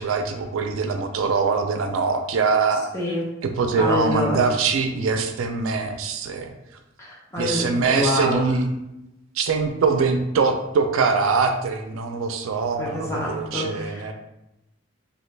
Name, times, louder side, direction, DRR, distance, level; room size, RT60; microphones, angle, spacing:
voice 1, 0.0-2.9 3.4-6.5 7.4-8.7 9.4-14.1, right 4 dB, 80° right, 6 dB, 0.4 m, -23 dB
voice 2, 2.9-3.3 3.7-4.4 7.0-8.4 12.8-14.1, left 1 dB, 15° left, -5 dB, 0.7 m, -26 dB
3.1 x 2.4 x 3.2 m, 0.90 s
head